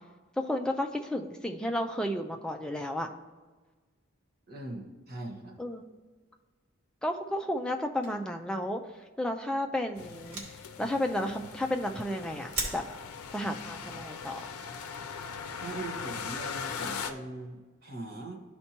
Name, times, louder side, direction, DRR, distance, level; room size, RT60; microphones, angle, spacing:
voice 1, 0.4-3.1 5.6-5.8 7.0-8.8 9.2-10.4 10.8-12.8 13.3-14.4, left 1 dB, 5° left, 3 dB, 0.3 m, -32 dB
voice 2, 4.5-5.6 13.9-14.0 15.6-18.4, right 2 dB, 45° right, 0 dB, 1.2 m, -41 dB
sound 1, 5.7-5.8 6.1-6.2 7.6-8.5 9.0-9.2 9.5-9.6 10.1-10.8 11.4-11.6 11.9-12.2 12.5-12.8, right 3 dB, 80° right, 1.5 m, -38 dB
sound 2, 10.0-17.1, left 6 dB, 90° left, 0.5 m, -40 dB
12.0 x 4.4 x 2.9 m, 1.3 s
head